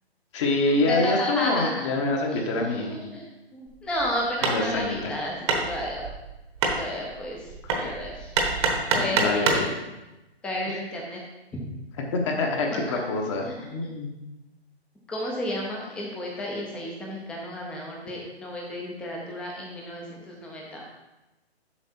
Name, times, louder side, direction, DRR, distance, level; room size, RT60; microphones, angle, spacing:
voice 1, 0.3-3.0 4.4-5.0 7.6-7.8 8.9-9.7 10.7-10.8 12.1-14.1, left 2 dB, 30° left, 2 dB, 1.0 m, -26 dB
voice 2, 0.9-1.9 2.3-6.0 6.8-7.4 7.8-8.3 8.9-9.6 10.4-11.2 12.7-13.0 13.4-13.5 15.1-20.8, left 1 dB, 5° left, -2 dB, 0.5 m, -32 dB
Hammer, 3.7-9.7, right 4 dB, 25° right, 1.0 m, -27 dB
7.3 x 5.6 x 4.3 m, 1.0 s
hypercardioid pair, 150°, 32 cm